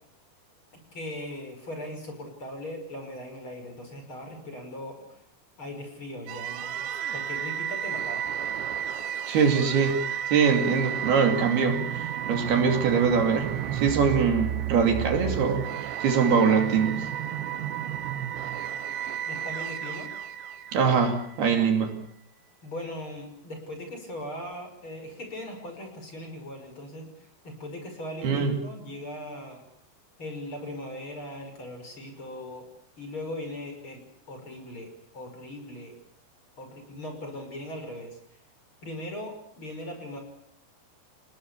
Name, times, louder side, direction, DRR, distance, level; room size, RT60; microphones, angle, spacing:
voice 1, 0.7-5.2 5.6-8.3 19.2-20.1 22.6-29.6 30.2-32.7 33.0-36.0 36.6-38.4 38.8-40.2, left 1 dB, 30° left, 4 dB, 6.4 m, -39 dB
sound 1, 6.3-21.4, right 10 dB, 90° right, 3.5 m, -32 dB
voice 2, 9.3-10.0 10.3-17.0 20.7-21.9 28.2-28.5, right 6 dB, 65° right, 4 dB, 4.4 m, -23 dB
30.0 x 19.0 x 7.1 m, 0.69 s
omnidirectional pair, 4.9 m